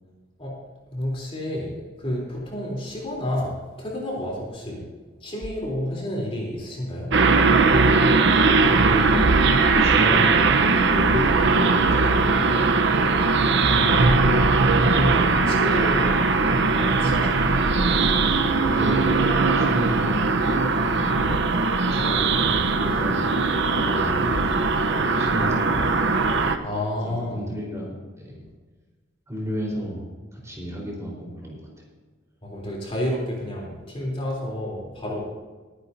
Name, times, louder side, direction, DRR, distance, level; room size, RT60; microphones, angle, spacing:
voice 1, 0.9-4.9 5.2-7.1 13.7-14.4 14.7-16.1 16.7-17.6 18.2-18.4 26.6-27.5 32.4-35.3, left 1 dB, 30° left, -2 dB, 3.4 m, -30 dB
sound 1, 7.1-26.6, right 3 dB, 65° right, 0.9 m, -20 dB
voice 2, 8.6-9.4 9.8-13.1 18.7-21.2 21.9-23.3 23.7-26.6 27.0-28.4 29.3-30.1 30.3-31.6, equal, 15° right, -3 dB, 4.2 m, -32 dB
22.5 x 10.0 x 2.8 m, 1.4 s
head